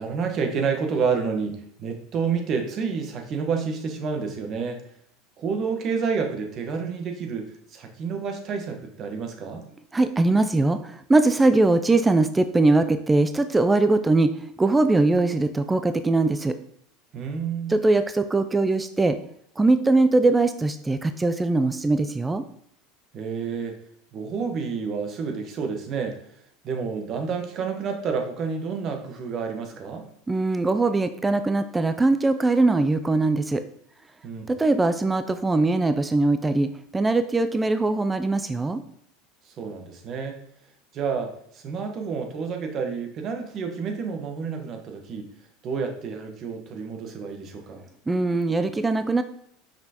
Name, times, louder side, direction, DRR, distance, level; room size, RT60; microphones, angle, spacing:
voice 1, 0.0-4.8 5.4-9.6 17.1-17.7 23.1-23.7 24.1-26.2 26.6-30.1 34.2-34.5 39.6-40.4 40.9-45.3 45.6-47.8, right 5 dB, 45° right, 4 dB, 1.2 m, -29 dB
voice 2, 9.9-14.3 14.6-16.6 17.7-19.2 19.6-22.4 30.3-33.6 34.5-38.8 48.1-49.2, right 2 dB, 15° right, 10 dB, 0.4 m, -21 dB
5.9 x 5.5 x 2.9 m, 0.69 s
hypercardioid pair, 95°, 0 cm